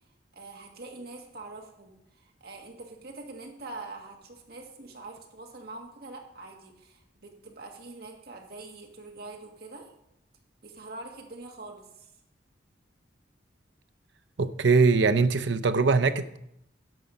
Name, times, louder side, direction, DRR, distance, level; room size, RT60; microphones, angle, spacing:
voice 1, 0.3-9.9 10.6-12.1, right 3 dB, 55° right, 2 dB, 1.5 m, -44 dB
voice 2, 14.4-16.4, right 4 dB, 75° right, 11 dB, 0.6 m, -22 dB
11.0 x 7.1 x 5.3 m, 0.82 s
head